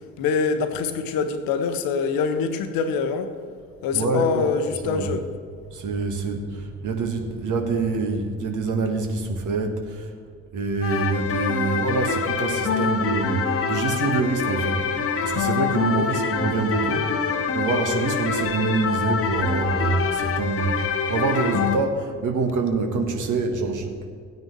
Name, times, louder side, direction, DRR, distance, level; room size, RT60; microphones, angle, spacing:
voice 1, 0.2-3.3 3.8-5.3 12.8-12.9 15.9-16.1, left 5 dB, 60° left, 1.0 m, -24 dB
voice 2, 3.9-4.4 4.8-5.1 5.7-10.1 10.5-14.9 15.2-24.1, right 4 dB, 50° right, 1.6 m, -26 dB
sound 1, 10.8-21.8, left 6 dB, 35° left, 1.0 m, -25 dB
16.5 x 9.4 x 3.3 m
figure-of-eight pair, 45°, 40 cm